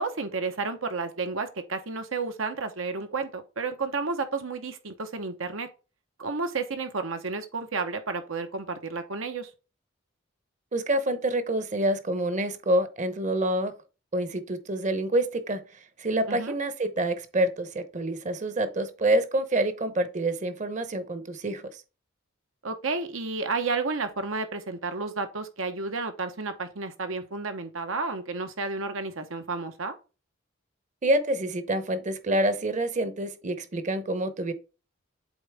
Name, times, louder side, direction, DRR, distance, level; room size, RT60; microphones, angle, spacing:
voice 1, 0.0-5.7 6.2-9.5 16.3-16.5 22.6-29.9, right 4 dB, 90° right, 1.1 m, -31 dB
voice 2, 10.7-13.7 14.1-15.6 16.0-21.6 31.0-34.5, right 1 dB, 35° right, 0.8 m, -27 dB
7.9 x 3.9 x 3.5 m
head